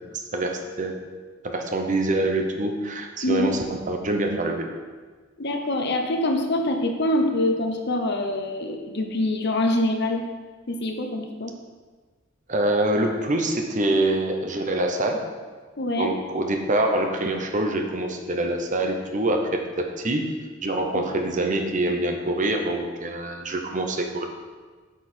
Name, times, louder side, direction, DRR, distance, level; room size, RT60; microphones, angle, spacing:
voice 1, 0.1-1.0 1.4-4.7 12.5-15.3 16.0-20.3 20.6-24.3, right 1 dB, 40° right, 4 dB, 0.9 m, -25 dB
voice 2, 5.4-10.2 10.7-11.5 15.8-16.1 20.9-21.0, left 1 dB, 55° left, 4 dB, 1.0 m, -25 dB
8.2 x 7.2 x 4.4 m, 1.4 s
head